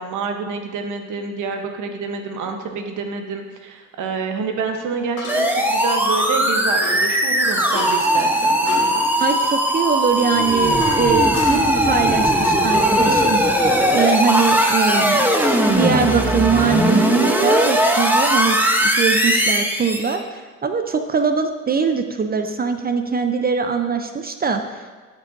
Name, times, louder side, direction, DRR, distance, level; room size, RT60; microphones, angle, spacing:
voice 1, 0.0-9.0, right 5 dB, 80° right, 4 dB, 1.0 m, -28 dB
sound 1, 1.5-1.6 5.2-5.7 6.8-7.1 7.7-8.2 8.7-9.0 10.2-11.8 13.2-13.6 14.9-15.1 16.5-17.5, left 3 dB, 90° left, 1.6 m, -34 dB
sound 2, 5.3-20.2, equal, 5° right, 0.8 m, -18 dB
voice 2, 9.2-25.0, right 5 dB, 30° right, 7 dB, 0.5 m, -22 dB
11.5 x 5.3 x 2.6 m, 1.4 s
cardioid pair, 90°, 30 cm